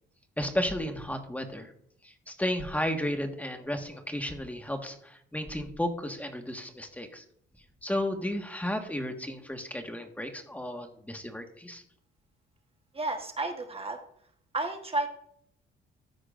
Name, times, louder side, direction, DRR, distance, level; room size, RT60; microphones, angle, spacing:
voice 1, 0.4-1.7 2.0-7.2 7.8-11.8, left 1 dB, 5° left, 5 dB, 1.5 m, -33 dB
voice 2, 12.9-14.0 14.5-15.1, right 2 dB, 30° right, 5 dB, 1.2 m, -31 dB
13.5 x 9.7 x 2.5 m, 0.67 s
cardioid pair, 90°, 20 cm